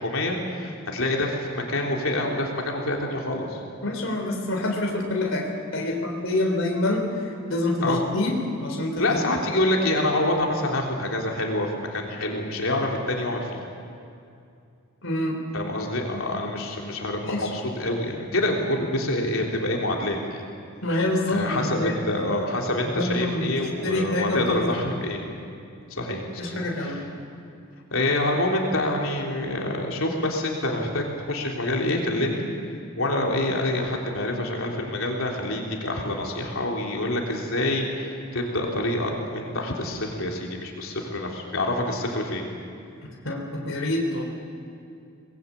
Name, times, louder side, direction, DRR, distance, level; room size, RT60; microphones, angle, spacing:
voice 1, 0.0-3.6 7.8-8.0 9.0-13.6 15.5-20.4 21.3-25.3 25.9-27.0 27.9-32.5 33.0-42.4, left 1 dB, 90° left, 0 dB, 3.4 m, -26 dB
voice 2, 3.8-8.3 8.6-9.1 15.0-15.4 17.2-17.5 20.8-22.0 22.8-23.5 23.8-24.7 26.4-27.0 43.2-44.2, left 1 dB, 70° left, 0 dB, 3.8 m, -26 dB
24.0 x 20.5 x 8.7 m, 2.5 s
head